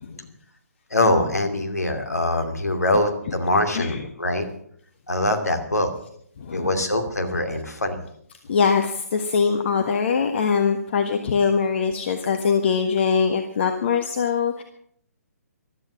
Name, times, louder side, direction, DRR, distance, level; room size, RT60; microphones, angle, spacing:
voice 1, 0.9-4.5 5.1-5.9 6.5-8.0, left 1 dB, 80° left, 5 dB, 2.6 m, -23 dB
voice 2, 6.4-6.7 8.5-14.6, left 6 dB, 45° left, 5 dB, 1.4 m, -22 dB
15.0 x 12.5 x 6.2 m, 0.64 s
figure-of-eight pair, 135°, 9 cm